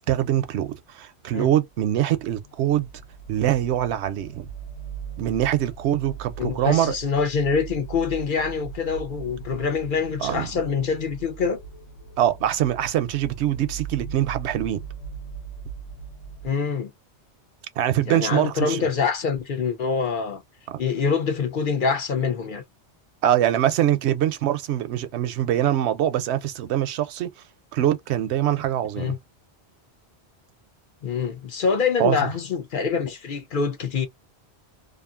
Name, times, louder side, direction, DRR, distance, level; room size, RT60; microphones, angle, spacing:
voice 1, 0.0-2.9 3.3-4.5 5.2-7.0 10.2-10.5 12.2-14.8 17.8-18.9 20.7-20.8 23.2-27.3 27.7-29.1 32.0-32.3, right 12 dB, 75° right, 0.9 m, -23 dB
sound 1, 1.7-16.5, right 6 dB, 85° left, 1.0 m, -40 dB
voice 2, 6.4-11.6 16.4-16.9 18.1-20.4 20.8-22.6 29.0-29.2 31.0-34.1, left 5 dB, 55° left, 0.8 m, -25 dB
2.6 x 2.4 x 2.4 m
omnidirectional pair, 1.1 m